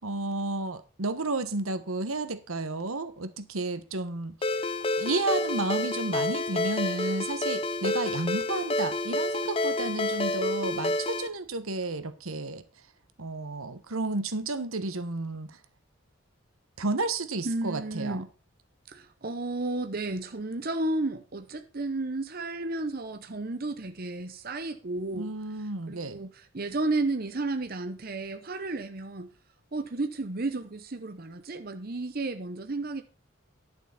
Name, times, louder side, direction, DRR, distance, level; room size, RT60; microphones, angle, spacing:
voice 1, 0.0-4.4 5.0-12.6 13.2-15.6 16.8-18.2 25.1-26.2, right 2 dB, 85° right, 1.3 m, -32 dB
Ringtone, 4.4-11.3, left 2 dB, 25° left, 0.6 m, -29 dB
voice 2, 17.4-18.3 18.9-25.3 25.9-29.3 29.7-33.0, right 2 dB, 45° right, 0.9 m, -32 dB
11.5 x 6.8 x 5.8 m
head